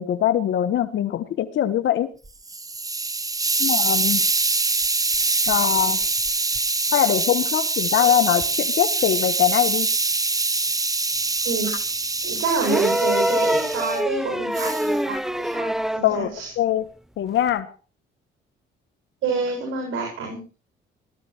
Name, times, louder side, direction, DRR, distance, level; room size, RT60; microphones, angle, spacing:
voice 1, 0.0-2.1 3.6-4.2 5.5-6.0 6.9-9.9 16.0-16.9 17.2-17.7, left 11 dB, 70° left, 9 dB, 1.6 m, -22 dB
Hiss, 2.2-14.0 14.5-14.9, right 3 dB, 15° right, 1.2 m, -24 dB
voice 2, 11.4-11.8 12.2-16.5 19.2-20.4, right 5 dB, 80° right, 1 dB, 7.1 m, -27 dB
sound 1, 12.6-16.1 17.5-17.6, equal, ahead, 0.7 m, -24 dB
18.0 x 13.0 x 4.5 m, 0.35 s
cardioid pair, 90°, 20 cm